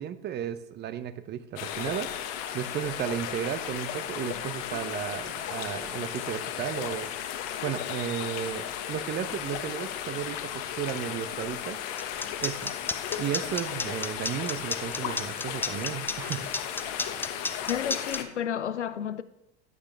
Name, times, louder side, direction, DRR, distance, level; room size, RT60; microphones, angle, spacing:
voice 1, 0.0-7.1 7.6-11.8 12.4-16.5, right 10 dB, 30° right, 0.8 m, -34 dB
sound 1, 1.6-18.2, left 10 dB, 45° left, 1.3 m, -35 dB
sound 2, 12.0-18.2, left 3 dB, 5° left, 0.5 m, -32 dB
voice 2, 17.7-19.2, left 9 dB, 80° left, 0.7 m, -31 dB
14.5 x 9.7 x 3.4 m
figure-of-eight pair, 80°, 34 cm